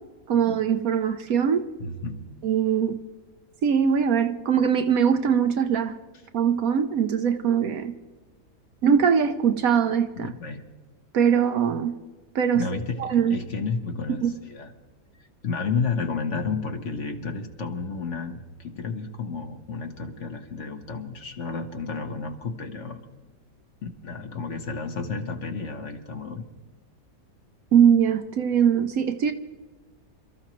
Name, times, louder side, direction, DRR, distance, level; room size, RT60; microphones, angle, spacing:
voice 1, 0.3-1.7 2.4-3.0 3.6-5.9 6.3-7.9 8.8-10.3 11.1-12.0 12.3-12.7 13.0-13.4 14.2-14.3 27.7-29.3, right 7 dB, 65° right, 1.0 m, -21 dB
voice 2, 1.8-2.2 10.2-10.6 12.5-14.7 15.4-23.0 23.8-26.5, left 4 dB, 50° left, 1.2 m, -31 dB
27.5 x 13.5 x 3.0 m
omnidirectional pair, 1.8 m